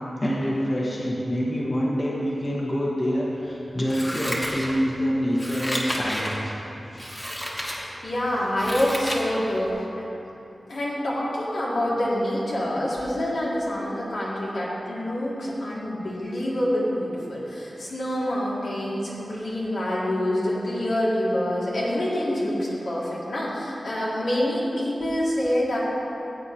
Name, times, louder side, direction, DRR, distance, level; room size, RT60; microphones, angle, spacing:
voice 1, 0.2-6.5 6.9-7.2, equal, 35° left, -5 dB, 1.4 m, -26 dB
Scissors, 3.9-5.0 5.3-6.4 7.0-7.8 8.2-9.3 9.7-9.8, equal, 10° left, 1.5 m, -31 dB
voice 2, 8.0-9.8 10.7-25.8, left 1 dB, 80° left, -7 dB, 2.4 m, -26 dB
14.5 x 8.3 x 3.0 m, 3.0 s
wide cardioid pair, 95°, 0 cm